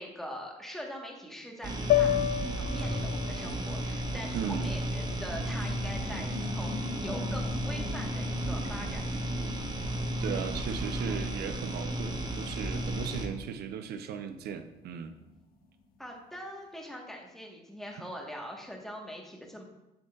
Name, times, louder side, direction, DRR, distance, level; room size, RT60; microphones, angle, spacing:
voice 1, 0.0-6.7 7.0-9.0 16.0-19.6, equal, ahead, 0 dB, 1.3 m, -42 dB
sound 1, 1.6-13.3, right 1 dB, 25° right, 0.9 m, -33 dB
sound 2, 1.9-6.2, left 13 dB, 60° left, 0.4 m, -32 dB
voice 2, 4.3-4.7 10.2-15.2, right 8 dB, 70° right, 9 dB, 0.6 m, -37 dB
sound 3, 4.6-15.7 16.1-16.2, left 3 dB, 30° left, 1.5 m, -44 dB
7.7 x 7.0 x 2.4 m, 0.93 s
cardioid pair, 110°, 17 cm